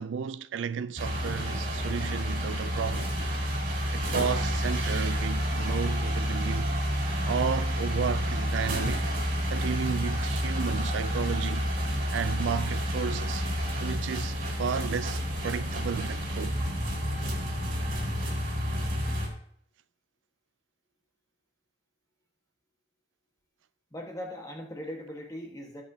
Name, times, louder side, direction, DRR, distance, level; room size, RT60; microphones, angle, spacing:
voice 1, 0.0-3.1 3.9-6.7 7.2-9.0 9.5-11.7 12.1-13.5 13.8-16.6, right 6 dB, 80° right, 0.4 m, -33 dB
sound 1, 1.0-19.3, equal, 50° right, 3.2 m, -29 dB
voice 2, 23.9-25.8, equal, 20° left, 1.5 m, -39 dB
17.0 x 6.2 x 2.8 m
head